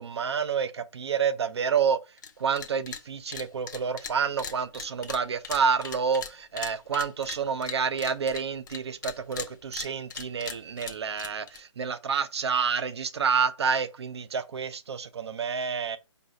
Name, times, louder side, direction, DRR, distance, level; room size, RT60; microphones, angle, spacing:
voice 1, 0.0-2.0 2.4-16.0, right 6 dB, 55° right, 0.5 m, -28 dB
sound 1, 2.2-2.3 2.6-3.0 3.3-8.8 9.0-11.6, left 7 dB, 40° left, 0.5 m, -39 dB
4.6 x 2.6 x 3.1 m
figure-of-eight pair, 150°, 16 cm